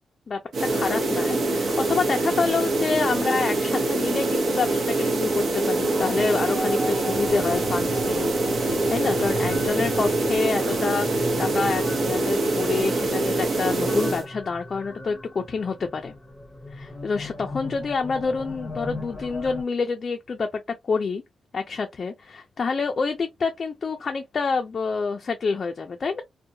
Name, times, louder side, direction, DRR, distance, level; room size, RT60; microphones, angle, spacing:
sound 1, 0.5-14.3, right 2 dB, 65° right, 0.8 m, -24 dB
voice 1, 0.7-16.1 16.7-21.2 21.5-26.2, left 4 dB, 40° left, 0.4 m, -28 dB
sound 2, 5.6-19.6, left 1 dB, 10° left, 0.7 m, -36 dB
2.7 x 2.1 x 2.5 m
wide cardioid pair, 160°, 0 cm